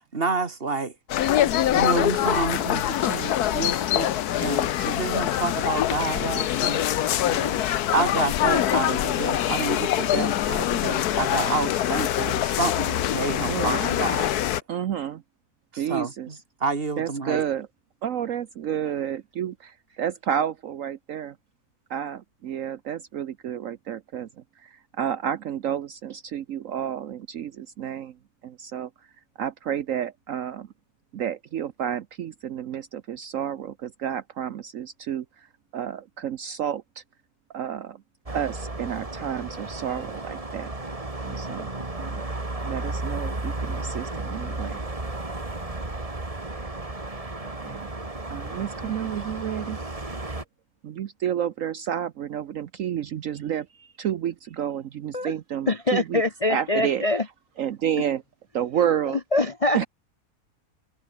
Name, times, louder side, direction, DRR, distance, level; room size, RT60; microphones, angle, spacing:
voice 1, 0.1-0.9 1.7-4.1 4.4-6.8 7.9-14.3 15.7-17.4, right 4 dB, 40° right, 2.2 m, -29 dB
sound 1, 1.1-14.6, left 12 dB, 90° left, 1.4 m, -24 dB
voice 2, 7.2-7.6 13.5-13.8 14.7-15.2 15.7-16.3 17.0-17.7 18.0-21.4 21.9-24.3 24.6-28.2 28.4-28.9 29.4-30.7 31.1-35.5 35.7-37.0 37.5-38.0 38.3-40.7 41.2-41.7 42.0-42.3 42.6-44.8 46.5-46.7 47.4-47.9 48.3-49.8 50.8-56.2 56.5-57.0 57.6-58.2 58.5-59.2 59.7-59.9, right 9 dB, 65° right, 1.1 m, -30 dB
sound 2, 38.3-50.4, right 2 dB, 20° right, 2.4 m, -33 dB
voice 3, 55.7-57.3 59.1-59.9, left 2 dB, 30° left, 0.8 m, -24 dB
omnidirectional pair, 1.6 m